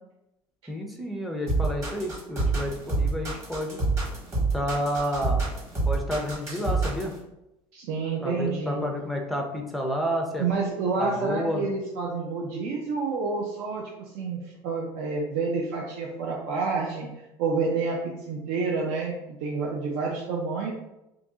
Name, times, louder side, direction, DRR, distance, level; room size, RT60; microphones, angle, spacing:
voice 1, 0.7-3.8 4.5-5.4 5.8-7.2 8.2-10.5 11.0-11.7, equal, ahead, 1 dB, 0.4 m, -30 dB
sound 1, 1.5-7.1, right 3 dB, 30° right, 1.3 m, -26 dB
voice 2, 7.7-8.8 10.4-17.1 17.4-19.1 19.4-20.7, right 4 dB, 80° right, -2 dB, 0.6 m, -29 dB
2.9 x 2.6 x 3.5 m, 0.89 s
cardioid pair, 170°, 10 cm